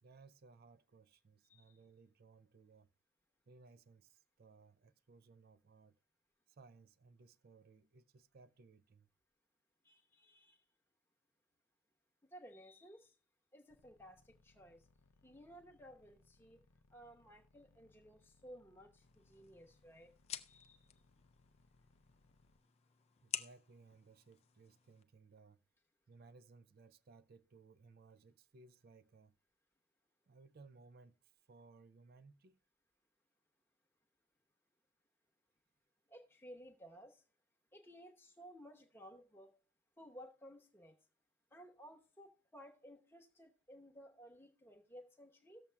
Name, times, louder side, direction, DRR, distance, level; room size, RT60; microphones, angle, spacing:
voice 1, 0.0-2.9 3.5-6.0 6.5-9.1 23.2-25.6 26.1-29.4 30.3-32.6, right 4 dB, 45° right, 0.4 m, -62 dB
voice 2, 9.8-10.7 12.2-13.1 13.5-14.9 15.2-16.6 16.9-20.1 20.5-20.9 36.1-37.2 37.7-39.5 40.0-41.0 41.5-45.6, equal, 10° left, 0.9 m, -57 dB
sound 1, 13.7-22.6, left 3 dB, 80° left, 0.5 m, -71 dB
sound 2, 19.0-25.0, left 9 dB, 30° left, 0.3 m, -51 dB
18.0 x 7.1 x 2.2 m
head